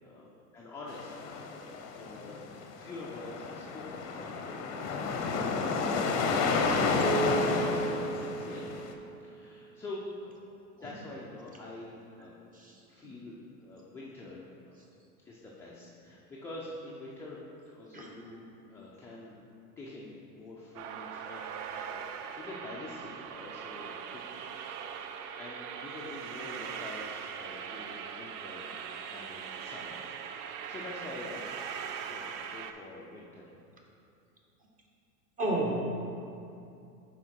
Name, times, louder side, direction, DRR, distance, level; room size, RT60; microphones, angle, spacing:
voice 1, 0.0-1.1 1.5-4.7 4.9-8.9 9.2-10.3 10.8-12.3 12.7-14.8 15.3-19.4 19.8-24.4 24.8-28.6 29.0-31.6 32.0-33.5, left 2 dB, 5° left, -6 dB, 0.3 m, -46 dB
sound 1, 0.9-8.9, left 4 dB, 35° left, 0.7 m, -31 dB
sound 2, 7.0-9.4, right 4 dB, 50° right, 1.2 m, -34 dB
sound 3, 20.8-32.7, right 7 dB, 70° right, 0.6 m, -41 dB
voice 2, 35.4-35.9, right 1 dB, 15° right, -1 dB, 1.1 m, -31 dB
6.0 x 4.5 x 4.5 m, 2.6 s
hypercardioid pair, 100°, 47 cm